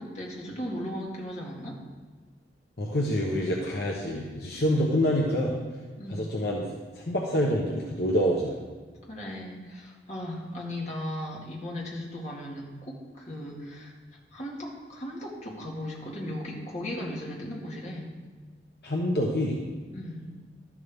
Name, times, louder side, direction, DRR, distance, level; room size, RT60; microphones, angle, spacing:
voice 1, 0.0-1.8 4.6-4.9 6.0-6.3 9.1-14.0 14.3-18.1 19.9-20.3, left 1 dB, 40° left, -3 dB, 2.1 m, -37 dB
voice 2, 2.8-5.5 6.1-6.7 6.9-8.5 18.8-19.6, equal, 65° left, -1 dB, 1.1 m, -26 dB
12.5 x 11.0 x 3.6 m, 1.4 s
head